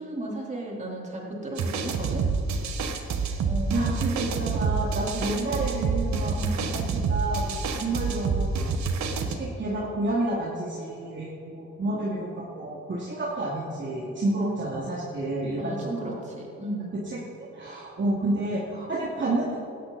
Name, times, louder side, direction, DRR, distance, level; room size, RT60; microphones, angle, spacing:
voice 1, 0.0-2.2 3.4-4.0 6.4-6.8 14.4-14.7 15.6-17.1, right 1 dB, 25° right, -3 dB, 4.2 m, -35 dB
sound 1, 1.6-9.3, right 4 dB, 65° right, 1.5 m, -27 dB
voice 2, 3.7-6.4 6.7-8.5 9.3-16.2 17.1-19.6, right 2 dB, 40° right, -5 dB, 2.7 m, -30 dB
19.0 x 13.0 x 4.3 m, 2.7 s
cardioid pair, 90°, 30 cm